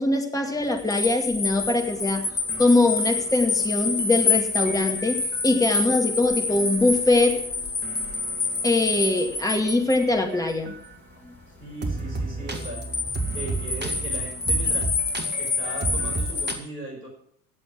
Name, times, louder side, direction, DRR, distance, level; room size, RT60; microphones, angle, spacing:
voice 1, 0.0-2.3 2.6-7.4 8.6-10.7, left 2 dB, 5° left, 2 dB, 2.1 m, -22 dB
sound 1, 0.7-10.1 12.5-16.5, left 4 dB, 30° left, 2.5 m, -27 dB
sound 2, 1.8-5.6 6.5-10.9 11.8-16.5, right 3 dB, 20° right, 1.9 m, -35 dB
voice 2, 11.6-12.8 13.3-14.9 15.4-17.1, right 2 dB, 75° right, 0 dB, 5.7 m, -37 dB
17.0 x 7.6 x 6.2 m, 0.63 s
figure-of-eight pair, 75°, 48 cm